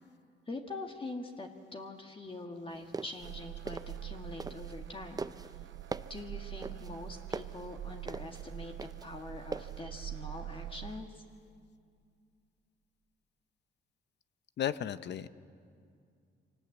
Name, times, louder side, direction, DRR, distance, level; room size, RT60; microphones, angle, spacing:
voice 1, 0.5-5.2 6.1-8.7 9.0-11.2, left 2 dB, 25° left, 3 dB, 1.7 m, -44 dB
sound 1, 2.7-4.9 5.2-9.8, right 4 dB, 20° right, 0.6 m, -41 dB
sound 2, 3.2-11.0, right 12 dB, 70° right, 0.7 m, -44 dB
voice 2, 14.6-15.3, left 10 dB, 60° left, 14 dB, 0.8 m, -34 dB
25.0 x 18.5 x 8.5 m, 2.3 s
cardioid pair, 90°, 20 cm